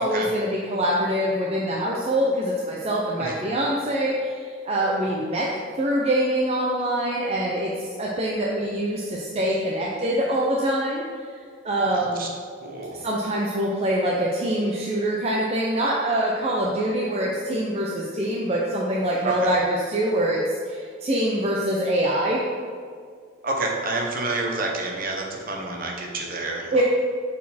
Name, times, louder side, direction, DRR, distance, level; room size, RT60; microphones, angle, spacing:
voice 1, 0.0-5.5 5.8-7.7 8.0-11.0 11.6-12.3 13.0-22.4 26.7-26.8, right 1 dB, 30° right, -3 dB, 0.5 m, -24 dB
voice 2, 12.6-13.0 19.2-19.5 23.4-26.8, right 2 dB, 45° right, 0 dB, 0.9 m, -28 dB
6.2 x 4.2 x 4.2 m, 2.1 s
head